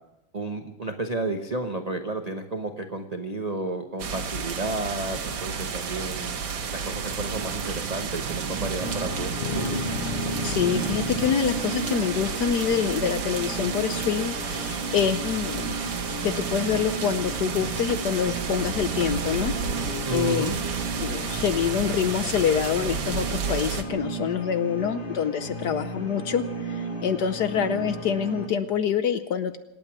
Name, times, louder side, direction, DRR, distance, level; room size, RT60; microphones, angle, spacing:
voice 1, 0.3-6.4 6.7-9.8 20.0-20.6, right 2 dB, 80° right, 5 dB, 0.3 m, -32 dB
sound 1, 4.0-23.8, right 5 dB, 60° right, 1.9 m, -31 dB
sound 2, 8.8-28.5, right 2 dB, 35° left, 2.9 m, -34 dB
sound 3, 9.4-11.4, left 10 dB, 80° left, 1.7 m, -33 dB
voice 2, 10.4-15.7 16.2-19.5 19.8-20.7 21.0-26.4 26.7-29.6, left 8 dB, 65° left, 11 dB, 1.1 m, -26 dB
26.0 x 9.1 x 6.0 m, 0.97 s
omnidirectional pair, 2.4 m